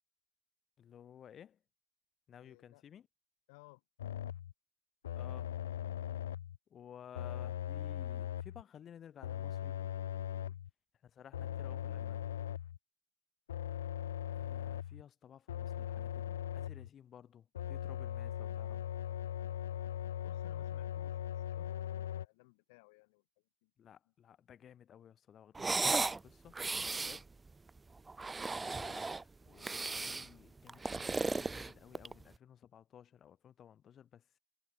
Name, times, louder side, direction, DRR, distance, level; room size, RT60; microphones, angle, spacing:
voice 1, 0.8-1.6 2.3-3.1 5.1-5.5 6.7-9.8 11.0-12.3 14.3-18.9 23.8-26.5 26.8-27.2 28.5-34.4, left 9 dB, 25° left, 2.2 m, -56 dB
voice 2, 2.4-2.8 3.5-3.8 10.3-10.6 20.2-23.2 23.6-23.7, left 28 dB, 55° left, 2.0 m, -61 dB
sound 1, 4.0-4.5 5.0-6.6 7.1-8.6 9.2-10.7 11.3-12.8 13.5-15.0 15.5-16.9 17.5-22.3, left 11 dB, 80° left, 0.5 m, -39 dB
sound 2, 25.6-26.2 26.5-27.2 28.1-29.2 29.6-30.3 30.7-32.2, right 3 dB, 10° right, 0.3 m, -35 dB
hypercardioid pair, 125°, 0 cm